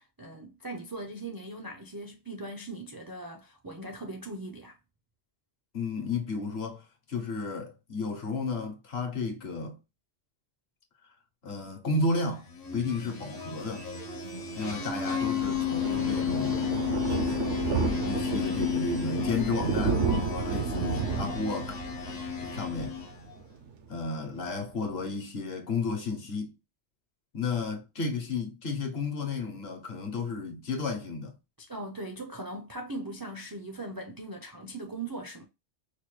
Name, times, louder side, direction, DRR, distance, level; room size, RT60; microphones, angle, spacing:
voice 1, 0.0-4.8 31.6-35.4, right 2 dB, 35° right, 0.3 m, -40 dB
voice 2, 5.7-9.8 11.4-12.5 12.7-13.9 14.6-16.7 17.3-17.6 18.0-21.8 22.4-23.0 23.9-26.5 27.3-31.3, left 3 dB, 65° left, 1.1 m, -32 dB
sound 1, 12.4-23.3, left 8 dB, 45° left, 0.7 m, -33 dB
Thunder, 14.3-23.7 24.1-24.3 24.6-24.7 24.9-25.0, right 5 dB, 85° right, 1.0 m, -32 dB
4.8 x 2.1 x 3.1 m
omnidirectional pair, 1.2 m